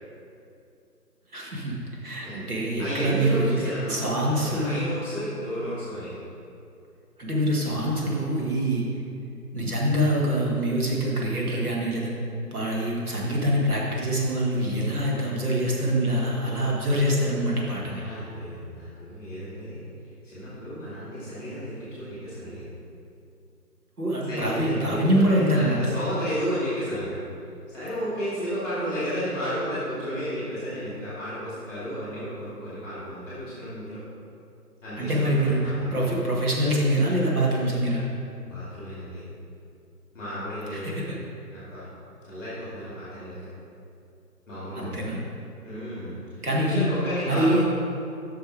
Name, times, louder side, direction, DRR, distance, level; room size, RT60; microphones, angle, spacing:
voice 1, 1.3-1.8 2.0-3.5 3.9-4.9 7.2-8.8 9.5-12.1 12.5-18.0 24.0-25.8 35.0-38.0 40.8-41.2 44.8-45.2 46.4-46.9 47.3-47.6, right 1 dB, 65° right, -4 dB, 1.8 m, -25 dB
voice 2, 2.8-6.2 17.7-19.9 20.2-22.7 24.3-27.2 27.7-34.0 34.8-35.9 38.4-39.2 40.1-41.0 41.5-41.8 42.2-43.5 44.5-45.0 45.6-47.6, equal, 5° left, -11 dB, 1.7 m, -33 dB
6.5 x 6.2 x 4.9 m, 2.6 s
figure-of-eight pair, 155°, 48 cm